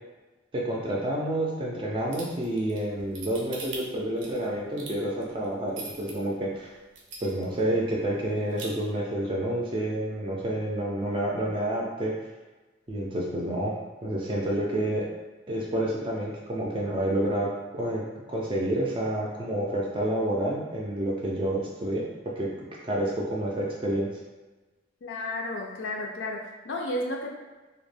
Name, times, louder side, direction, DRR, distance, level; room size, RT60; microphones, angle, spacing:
voice 1, 0.5-6.7 7.2-12.1 12.9-13.7 14.0-15.0 15.5-18.0 18.3-22.1 22.4-22.5 22.8-24.1, right 1 dB, 25° right, -3 dB, 0.4 m, -29 dB
sound 1, 2.1-6.1 6.6-6.7 7.0-7.6 7.9-8.0 8.3-8.7, right 4 dB, 85° right, 0.6 m, -41 dB
voice 2, 25.0-27.3, left 1 dB, 80° left, 0 dB, 0.4 m, -32 dB
2.2 x 2.0 x 3.2 m, 1.2 s
head